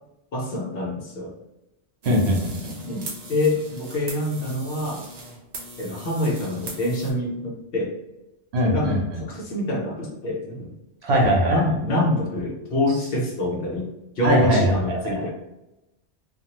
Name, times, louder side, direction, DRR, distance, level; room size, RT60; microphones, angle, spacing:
voice 1, 0.3-1.3 2.8-5.1 5.8-7.9 8.7-10.7 11.1-15.3, left 1 dB, 60° left, -2 dB, 0.8 m, -26 dB
sound 1, 2.0-7.1, right 2 dB, 45° right, 0.7 m, -39 dB
voice 2, 2.0-2.7 8.5-9.2 11.0-11.6 14.2-14.8 15.0-15.3, equal, 70° right, -1 dB, 1.0 m, -21 dB
2.7 x 2.4 x 2.8 m, 0.93 s
omnidirectional pair, 1.2 m